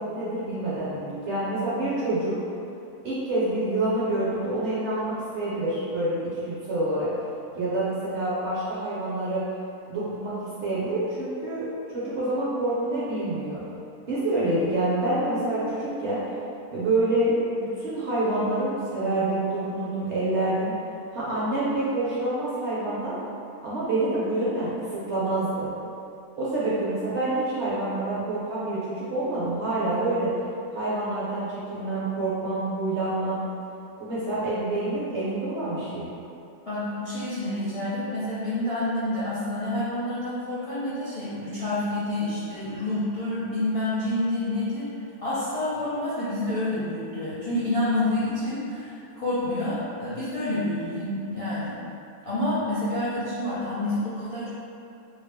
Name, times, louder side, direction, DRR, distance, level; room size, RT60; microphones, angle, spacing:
voice 1, 0.0-2.3 3.0-6.2 6.5-7.1 7.5-9.4 9.9-13.6 14.1-16.2 16.7-20.7 21.1-23.1 23.6-25.7 26.4-30.3 30.7-33.4 34.0-36.1, right 2 dB, 60° right, -9 dB, 0.8 m, -27 dB
voice 2, 36.7-51.8 52.2-54.5, left 1 dB, 50° left, -13 dB, 0.4 m, -28 dB
2.8 x 2.7 x 3.2 m, 2.7 s
omnidirectional pair, 1.7 m